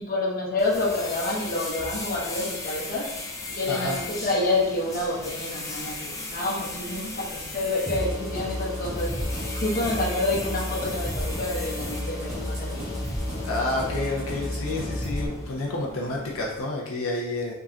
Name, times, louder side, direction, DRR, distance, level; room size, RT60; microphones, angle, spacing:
voice 1, 0.0-3.1 3.5-9.1 9.5-13.0, left 2 dB, 45° left, -4 dB, 1.2 m, -28 dB
sound 1, 0.6-16.6, left 2 dB, 15° left, 0.6 m, -38 dB
sound 2, 7.9-15.3, left 1 dB, 15° right, 1.3 m, -31 dB
voice 2, 13.4-17.5, left 2 dB, 85° left, -2 dB, 0.6 m, -29 dB
4.8 x 3.8 x 2.8 m, 0.96 s
head